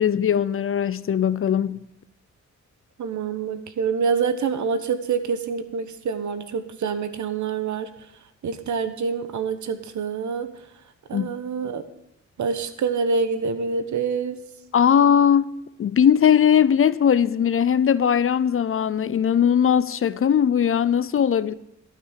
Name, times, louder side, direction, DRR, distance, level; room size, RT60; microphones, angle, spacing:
voice 1, 0.0-1.8 11.1-11.3 14.7-15.5 15.8-21.5, left 8 dB, 45° left, 0.6 m, -19 dB
voice 2, 3.0-7.9 8.4-10.5 11.1-11.8 12.4-14.4, right 5 dB, 70° right, 1.2 m, -26 dB
12.5 x 6.1 x 8.3 m
cardioid pair, 95°, 30 cm